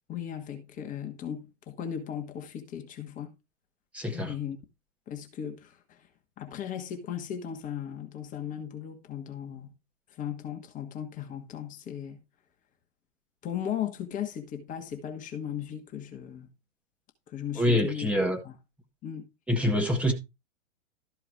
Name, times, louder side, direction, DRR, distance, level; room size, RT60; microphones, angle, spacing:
voice 1, 0.1-3.3 4.1-4.6 5.1-6.1 6.4-9.7 10.1-12.2 13.4-16.5 17.3-18.1 18.4-18.6 19.0-19.3, left 9 dB, 20° left, 1.4 m, -37 dB
voice 2, 3.9-4.3 17.5-18.4 19.5-20.1, left 1 dB, 5° right, 1.5 m, -25 dB
13.0 x 4.7 x 4.7 m
figure-of-eight pair, 110°, 36 cm